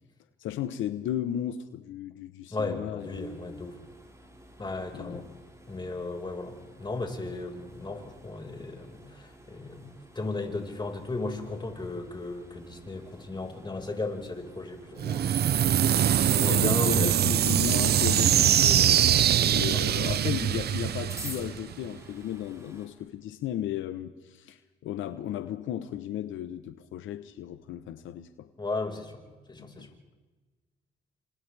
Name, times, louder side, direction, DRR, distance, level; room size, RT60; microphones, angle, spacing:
voice 1, 0.4-3.3 4.9-5.2 16.5-19.0 19.5-28.5 29.6-29.9, left 11 dB, 80° left, 11 dB, 0.9 m, -35 dB
voice 2, 2.5-3.8 4.6-5.3 5.7-15.4 15.7-15.8 16.1-17.4 19.5-19.8 28.6-29.9, left 3 dB, 25° left, 2 dB, 4.9 m, -36 dB
sound 1, 3.0-22.9, right 1 dB, 15° right, 5.6 m, -51 dB
sound 2, 15.0-21.9, right 10 dB, 55° right, 0.6 m, -23 dB
30.0 x 26.0 x 3.4 m, 1.3 s
cardioid pair, 90°, 20 cm